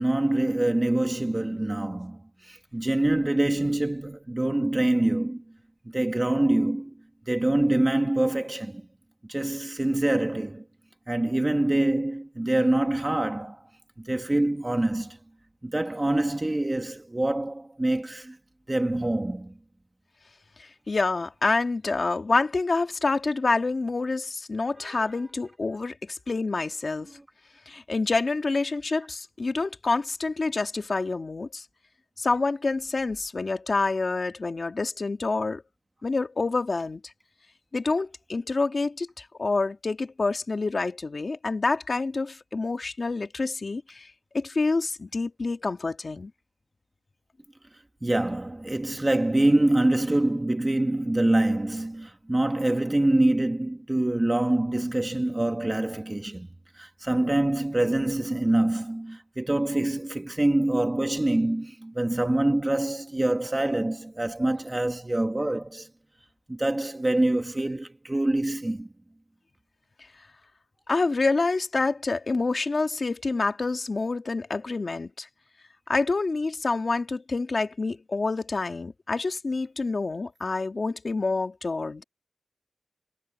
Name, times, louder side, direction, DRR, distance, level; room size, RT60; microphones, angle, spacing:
voice 1, 0.0-5.4 5.9-6.9 7.3-8.9 9.3-10.6 11.1-13.7 14.0-15.2 15.6-18.4 18.7-19.6 24.8-25.1 48.0-56.5 56.7-65.9 66.5-68.9, right 1 dB, 25° right, 1.7 m, -25 dB
voice 2, 20.6-27.2 27.7-31.7 32.2-35.6 36.0-37.0 37.7-46.3 70.9-75.3 75.9-82.0, left 3 dB, 55° left, 2.1 m, -27 dB
wide cardioid pair, 75°, 0 cm